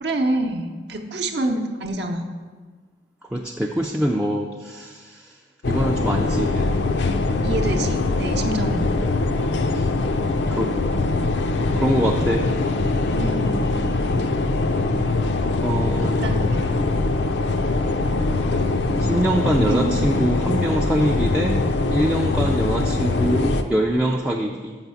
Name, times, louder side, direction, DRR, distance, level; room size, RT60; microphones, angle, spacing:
voice 1, 0.0-2.3 7.4-8.9 13.2-13.5 16.2-16.8 19.7-19.9, right 1 dB, 60° right, 4 dB, 0.7 m, -26 dB
voice 2, 3.2-5.4 5.7-6.7 9.7-9.9 10.5-10.7 11.1-11.2 11.8-12.5 15.6-16.4 19.0-21.6 21.9-24.8, right 1 dB, 5° right, -1 dB, 0.3 m, -24 dB
sound 1, 5.6-23.6, left 3 dB, 65° left, 0.5 m, -22 dB
6.3 x 5.9 x 6.8 m, 1.4 s
head